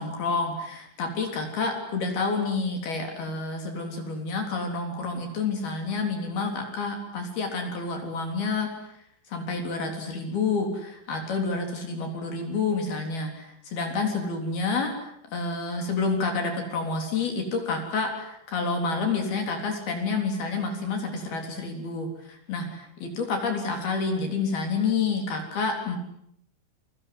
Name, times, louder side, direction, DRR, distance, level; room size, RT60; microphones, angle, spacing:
voice 1, 0.0-8.7 9.3-26.0, left 4 dB, 55° left, 4 dB, 5.3 m, -29 dB
29.0 x 24.0 x 7.8 m, 0.71 s
omnidirectional pair, 5.7 m